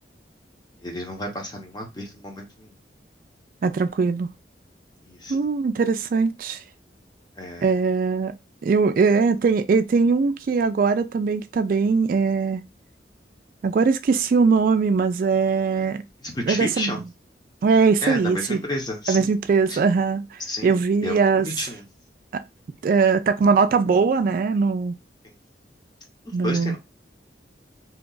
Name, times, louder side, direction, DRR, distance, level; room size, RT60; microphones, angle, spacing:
voice 1, 0.8-2.8 5.0-5.4 7.4-7.7 16.2-17.0 18.0-19.3 19.7-19.8 20.4-21.8 26.4-26.8, left 1 dB, 25° left, 0.8 m, -31 dB
voice 2, 3.6-4.3 5.3-6.6 7.6-8.3 8.6-12.6 13.6-16.0 16.5-16.9 17.6-18.6 19.1-21.5 22.3-22.4 22.8-25.0 26.3-26.8, right 5 dB, 50° right, 0.3 m, -21 dB
2.8 x 2.4 x 3.8 m
head